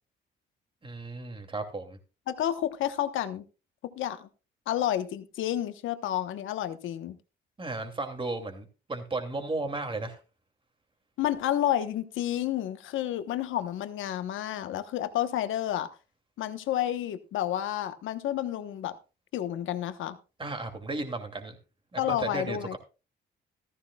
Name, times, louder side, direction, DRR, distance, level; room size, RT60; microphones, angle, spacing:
voice 1, 0.8-2.0 7.6-10.2 20.4-21.6 21.9-22.8, right 2 dB, 25° right, 6 dB, 2.6 m, -34 dB
voice 2, 2.3-3.4 3.8-4.3 4.7-7.2 11.2-15.9 16.4-18.9 19.3-20.2 22.0-22.8, left 11 dB, 80° left, 10 dB, 1.1 m, -30 dB
14.5 x 14.0 x 2.3 m, 0.31 s
cardioid pair, 90°, 20 cm